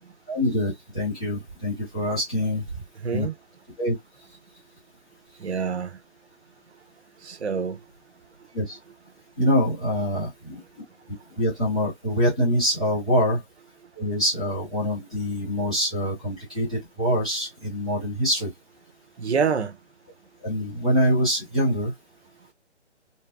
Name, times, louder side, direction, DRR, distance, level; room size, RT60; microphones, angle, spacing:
voice 1, 0.3-2.6 3.1-3.3 3.8-3.9 8.5-8.8 9.4-10.6 11.4-13.4 14.0-18.5 20.4-21.9, equal, 5° left, 0.6 m, -24 dB
voice 2, 3.0-3.3 5.4-6.0 7.2-7.8 19.2-19.7, right 6 dB, 65° right, 1.0 m, -26 dB
4.3 x 2.0 x 3.4 m
hypercardioid pair, 160°, 35 cm